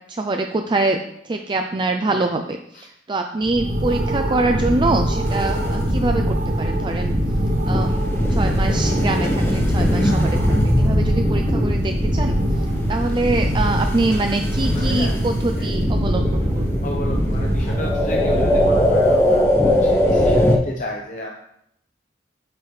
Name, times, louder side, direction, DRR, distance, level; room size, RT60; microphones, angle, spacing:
voice 1, 0.1-7.1 7.7-12.4 12.9-16.7, right 2 dB, 25° right, 4 dB, 0.4 m, -24 dB
sound 1, 3.4-19.4, equal, 40° right, 1.0 m, -23 dB
sound 2, 5.3-20.6, left 1 dB, 15° left, 0.8 m, -22 dB
voice 2, 14.7-15.1 15.6-15.7 16.8-21.3, left 1 dB, 45° left, -1 dB, 0.8 m, -33 dB
8.3 x 6.2 x 3.2 m, 0.73 s
head